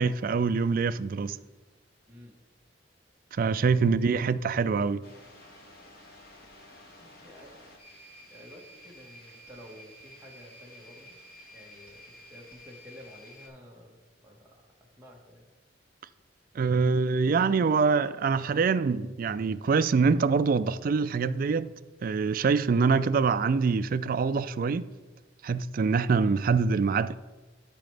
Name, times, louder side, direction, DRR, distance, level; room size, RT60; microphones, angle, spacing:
voice 1, 0.0-1.4 3.3-5.0 16.5-21.7 22.0-24.9 25.4-27.1, right 5 dB, 45° right, 0.3 m, -25 dB
sound 1, 5.0-13.5, left 1 dB, 50° left, 1.5 m, -51 dB
voice 2, 7.0-7.5 8.3-11.2 11.5-14.5 15.0-15.5, left 1 dB, 10° right, 1.5 m, -51 dB
13.0 x 5.0 x 3.3 m
head